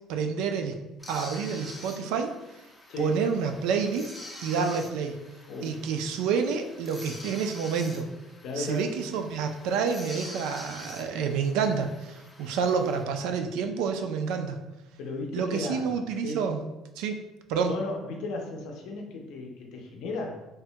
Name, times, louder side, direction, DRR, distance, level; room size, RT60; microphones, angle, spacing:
voice 1, 0.1-0.8 1.1-2.3 3.0-4.1 4.4-5.1 5.6-8.1 8.6-14.6 15.3-16.6 17.0-17.2 17.5-17.7, right 6 dB, 80° right, 6 dB, 0.3 m, -28 dB
sound 1, 1.0-13.0, left 1 dB, 10° left, 0.4 m, -46 dB
voice 2, 2.9-3.2 4.5-4.8 5.5-5.8 8.4-8.9 15.0-15.9 16.2-16.5 17.6-20.5, left 2 dB, 60° left, 1 dB, 0.5 m, -35 dB
3.3 x 2.1 x 2.7 m, 0.99 s
cardioid pair, 170°, 0 cm